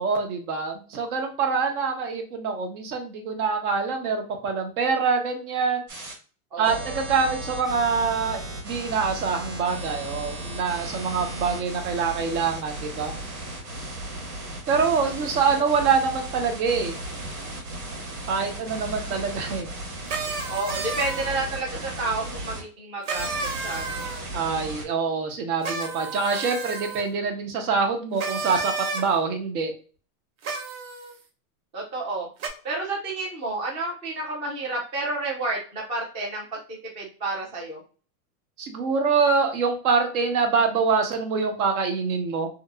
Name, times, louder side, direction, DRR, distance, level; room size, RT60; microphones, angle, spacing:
voice 1, 0.0-5.8 6.6-13.1 14.7-17.0 18.3-19.7 24.3-29.7 38.6-42.5, right 5 dB, 70° right, 5 dB, 1.0 m, -25 dB
sound 1, 5.9-6.1 6.6-22.6 23.1-24.8, right 1 dB, 85° right, 1.6 m, -36 dB
voice 2, 6.5-7.0 15.6-15.7 20.5-24.0 31.7-32.3 32.6-36.6 36.9-37.8, right 2 dB, 15° right, -3 dB, 0.3 m, -30 dB
sound 2, 20.1-21.4 23.1-24.2 25.6-27.0 28.2-29.0 30.4-31.1 32.4-32.5, right 4 dB, 50° right, 0.8 m, -31 dB
3.0 x 2.9 x 2.4 m, 0.38 s
supercardioid pair, 140°, 46 cm